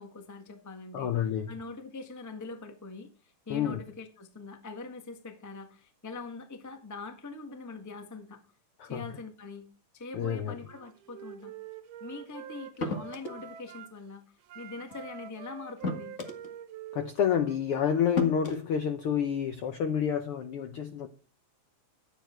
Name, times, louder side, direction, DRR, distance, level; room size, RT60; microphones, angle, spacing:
voice 1, 0.0-1.1 1.5-3.1 3.5-8.4 8.8-9.7 9.9-11.5 12.0-14.2 14.5-16.1, left 4 dB, 15° left, 0.6 m, -43 dB
voice 2, 0.9-1.5 3.5-3.8 8.8-9.1 10.1-10.5 16.9-21.1, left 8 dB, 75° left, 1.3 m, -29 dB
Wind instrument woodwind instrument, 10.6-14.0 14.4-18.1, right 9 dB, 85° right, 2.6 m, -46 dB
sound 1, 12.8-13.4 14.9-15.0 15.8-16.5 17.5-17.6 18.2-18.6, left 2 dB, 30° left, 1.4 m, -32 dB
11.5 x 9.3 x 4.5 m
omnidirectional pair, 3.6 m